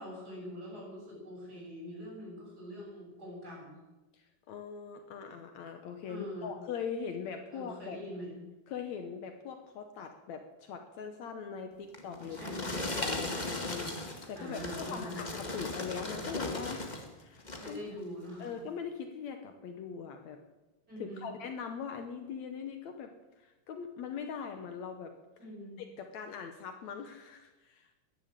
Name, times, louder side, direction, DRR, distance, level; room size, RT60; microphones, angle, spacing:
voice 1, 0.0-3.8 6.1-6.5 7.5-8.4 12.3-12.8 14.4-15.2 17.5-18.6 20.9-21.3 25.4-25.8, equal, 30° right, -4 dB, 7.7 m, -43 dB
voice 2, 4.1-8.0 8.7-12.6 12.9-17.8 18.4-20.4 21.0-23.1 23.4-25.1 25.8-27.9, left 6 dB, 70° left, 6 dB, 2.2 m, -41 dB
sound 1, 11.9-17.1 17.4-17.8 18.4-18.5, left 2 dB, 20° left, 1.1 m, -37 dB
14.0 x 11.0 x 8.9 m, 1.1 s
omnidirectional pair, 3.5 m